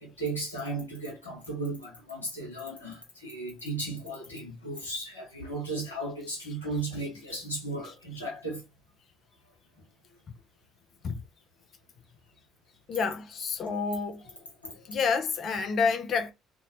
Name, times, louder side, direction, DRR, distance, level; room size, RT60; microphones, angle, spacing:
voice 1, 0.0-8.6 14.6-14.7, right 2 dB, 85° left, 0.8 m, -35 dB
voice 2, 12.9-14.2 14.9-16.3, left 5 dB, 45° left, 0.4 m, -29 dB
2.5 x 2.0 x 2.7 m
figure-of-eight pair, 50°, 0 cm